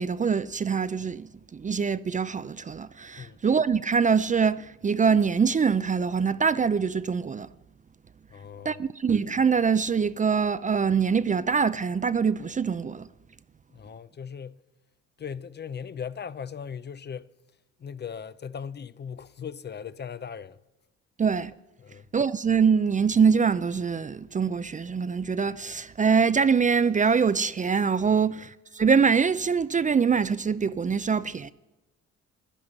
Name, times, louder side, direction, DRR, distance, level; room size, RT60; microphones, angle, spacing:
voice 1, 0.0-7.5 8.6-13.1 21.2-21.5 22.1-31.5, right 6 dB, 25° right, 0.4 m, -24 dB
voice 2, 8.3-8.8 13.7-14.6 15.2-17.3 17.8-20.6 21.8-22.1, left 7 dB, 35° left, 0.5 m, -38 dB
15.5 x 11.0 x 6.5 m
cardioid pair, 90°, 30 cm